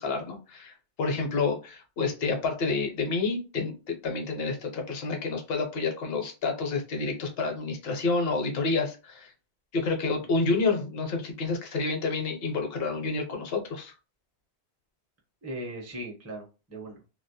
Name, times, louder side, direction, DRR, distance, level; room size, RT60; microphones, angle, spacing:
voice 1, 0.0-9.3 9.7-13.9, left 3 dB, 60° left, 3 dB, 0.9 m, -29 dB
voice 2, 15.4-17.1, right 1 dB, 20° right, 0 dB, 0.5 m, -39 dB
2.2 x 2.1 x 2.6 m, 0.31 s
omnidirectional pair, 1.2 m